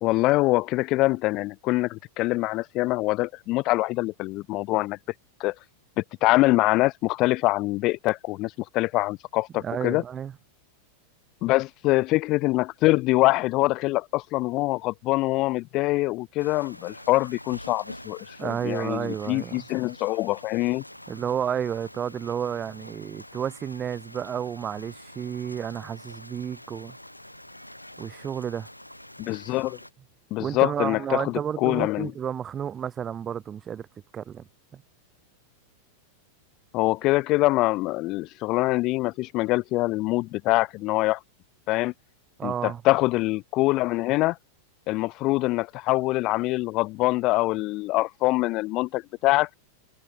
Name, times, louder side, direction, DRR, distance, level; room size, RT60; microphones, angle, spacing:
voice 1, 0.0-5.0 5.4-5.5 6.0-10.0 11.4-20.8 29.2-29.8 30.3-32.1 36.7-41.2 41.7-41.9 42.4-44.4 44.9-49.5, left 20 dB, 40° left, 0.8 m, -24 dB
voice 2, 9.6-10.3 18.4-19.6 21.1-27.0 28.0-28.7 30.4-33.9 34.1-34.4 34.7-34.8 42.4-42.8, right 8 dB, 25° right, 2.1 m, -31 dB
sound 1, 16.4-29.9, left 1 dB, 90° left, 4.2 m, -46 dB
figure-of-eight pair, 90°, 0 cm